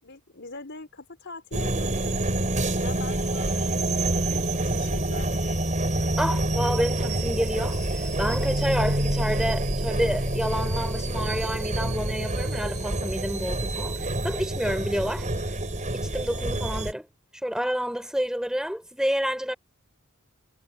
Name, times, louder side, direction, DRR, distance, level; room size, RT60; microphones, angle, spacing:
voice 1, 0.0-5.3, left 3 dB, 55° left, 5.1 m, -42 dB
sound 1, 1.5-16.9, right 1 dB, 35° right, 5.3 m, -27 dB
voice 2, 6.2-15.3 15.9-17.1 17.4-19.5, equal, 5° right, 6.2 m, -29 dB
head